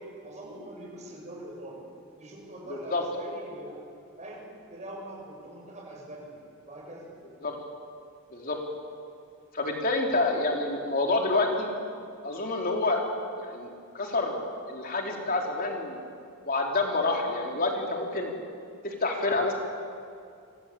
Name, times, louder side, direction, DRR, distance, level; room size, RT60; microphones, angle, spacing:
voice 1, 0.0-1.8 2.2-3.8 4.2-6.3 6.6-7.1, right 1 dB, 30° right, -2 dB, 7.3 m, -43 dB
voice 2, 2.7-3.0 7.4-7.5 8.3-8.6 9.5-11.7 12.2-13.0 13.4-13.7 13.9-16.0 16.5-18.3 18.8-19.5, left 2 dB, 40° left, 1 dB, 4.2 m, -28 dB
27.0 x 24.5 x 8.8 m, 2.4 s
head